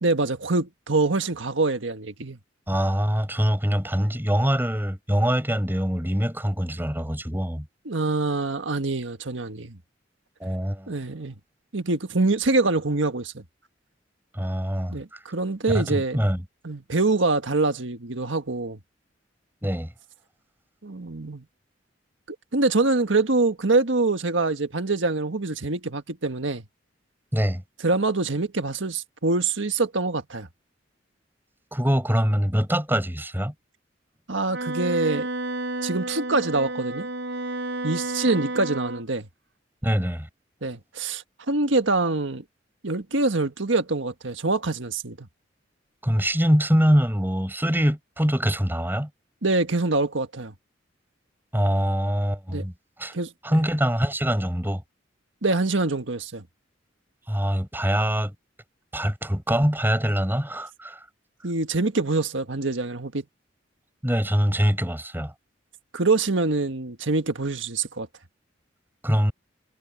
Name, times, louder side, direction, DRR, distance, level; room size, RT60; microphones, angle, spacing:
voice 1, 0.0-2.4 7.8-9.8 10.9-11.3 11.7-13.4 14.9-16.2 16.6-18.8 20.8-21.4 22.5-26.6 27.8-30.5 34.3-35.3 35.8-37.1 37.8-39.3 40.6-42.4 42.8-45.3 49.4-50.5 52.5-52.6 53.1-53.6 55.4-56.4 61.4-63.2 65.9-68.1, right 3 dB, 85° right, 1.6 m, -25 dB
voice 2, 2.7-7.7 10.4-10.9 14.3-15.2 15.7-16.4 19.6-19.9 27.3-27.6 31.7-33.5 39.8-40.3 46.0-49.1 51.5-52.7 53.0-53.1 53.4-54.8 57.3-58.3 58.9-61.0 64.0-65.3 69.0-69.3, equal, 10° right, 6.9 m, -24 dB
Wind instrument woodwind instrument, 34.5-39.0, right 2 dB, 65° right, 6.9 m, -31 dB
head